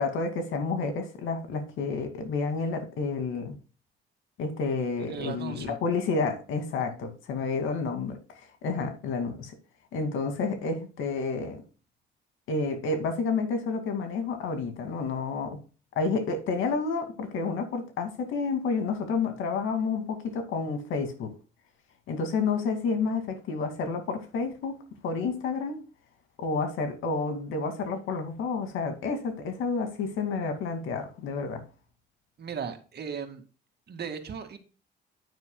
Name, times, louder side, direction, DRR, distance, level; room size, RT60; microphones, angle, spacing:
voice 1, 0.0-3.6 4.4-9.5 9.9-11.6 12.5-15.6 16.0-21.3 22.1-24.8 25.0-25.8 26.4-31.6, left 4 dB, 85° left, 2.3 m, -30 dB
voice 2, 5.0-5.8 6.9-7.0 32.4-33.4 33.9-34.6, right 6 dB, 55° right, 2.1 m, -37 dB
10.0 x 9.3 x 2.2 m
cardioid pair, 90°, 20 cm